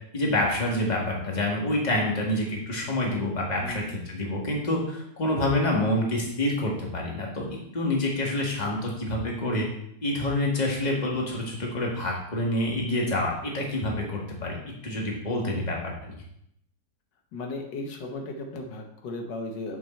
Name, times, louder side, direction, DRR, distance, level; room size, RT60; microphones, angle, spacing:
voice 1, 0.1-9.7 10.0-14.6 14.8-15.8 16.0-16.1, left 1 dB, 25° left, -1 dB, 1.6 m, -27 dB
voice 2, 3.6-4.0 17.3-19.8, left 2 dB, 85° left, 3 dB, 1.7 m, -36 dB
7.6 x 5.8 x 4.3 m, 0.76 s
omnidirectional pair, 1.9 m